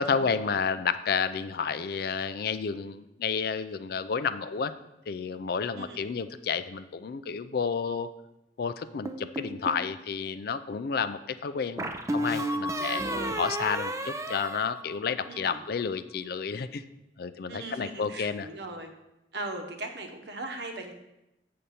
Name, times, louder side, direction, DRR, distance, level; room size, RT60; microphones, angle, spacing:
voice 1, 0.0-4.7 5.1-8.1 8.6-13.0 13.4-16.8 17.2-18.5, left 6 dB, 60° left, 12 dB, 0.4 m, -31 dB
sound 1, 9.1-9.9 11.8-15.4, right 1 dB, 15° right, 0.5 m, -32 dB
voice 2, 12.8-13.4 15.2-15.6 17.5-18.9 19.3-20.9, right 2 dB, 70° right, 5 dB, 1.0 m, -39 dB
7.6 x 6.8 x 4.2 m, 0.91 s
head